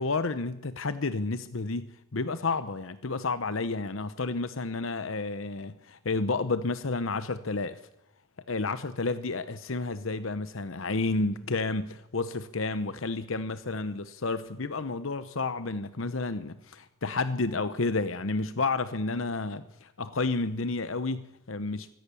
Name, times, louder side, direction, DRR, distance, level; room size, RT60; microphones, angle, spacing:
voice 1, 0.0-7.8 8.5-21.9, left 3 dB, 85° left, 0.9 m, -31 dB
24.0 x 17.0 x 7.1 m
head